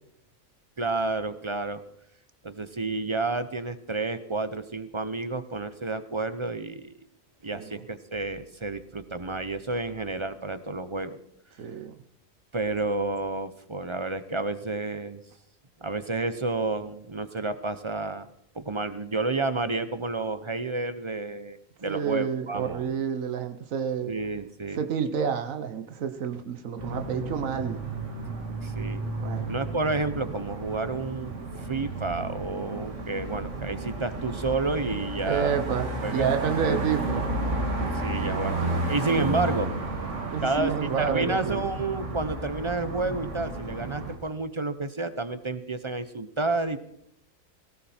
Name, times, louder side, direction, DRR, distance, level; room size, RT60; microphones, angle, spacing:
voice 1, 0.8-1.8 2.4-6.9 7.4-11.2 12.5-15.2 15.8-18.3 18.5-22.8 24.1-24.8 28.6-29.0 29.4-35.6 36.0-36.3 37.7-39.7 40.4-46.8, right 3 dB, 30° right, 12 dB, 0.6 m, -30 dB
voice 2, 11.6-11.9 21.9-24.1 24.7-27.8 29.2-29.4 35.2-37.3 40.3-41.7, right 7 dB, 85° right, 8 dB, 1.4 m, -29 dB
sound 1, 26.8-44.2, right 2 dB, 65° right, 2.4 m, -32 dB
18.0 x 16.5 x 4.3 m, 0.73 s
omnidirectional pair, 1.4 m